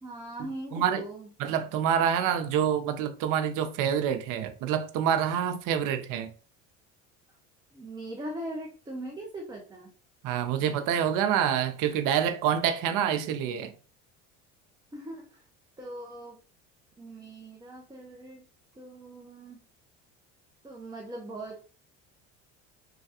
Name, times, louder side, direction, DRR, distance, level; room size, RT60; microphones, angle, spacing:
voice 1, 0.0-1.3 7.7-9.9 14.9-15.4 15.8-16.4 17.0-18.5 18.8-19.6 20.6-21.6, right 1 dB, 10° right, 0.6 m, -40 dB
voice 2, 0.7-1.0 1.4-6.3 10.2-13.7, right 9 dB, 60° right, 0.6 m, -27 dB
3.2 x 2.3 x 2.7 m
hypercardioid pair, 80°, 36 cm